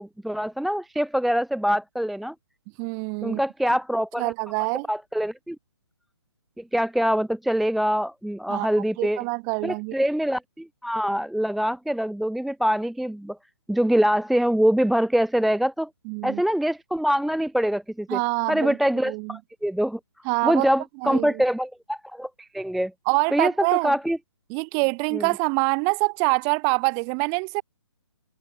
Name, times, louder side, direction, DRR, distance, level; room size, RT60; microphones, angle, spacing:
voice 1, 0.0-2.3 3.2-4.3 4.9-5.6 6.6-9.2 9.6-13.4 13.7-15.9 16.2-18.2 18.5-20.0 20.4-22.9 23.3-24.2 25.1-25.3, equal, ahead, 0.6 m, -24 dB
voice 2, 2.8-3.4 4.2-4.9 8.5-9.9 16.0-16.4 18.1-18.8 19.0-19.4 20.2-20.7 21.0-21.4 23.0-23.9 24.5-27.6, right 40 dB or more, 20° right, 1.5 m, -25 dB
hypercardioid pair, 155°, 15 cm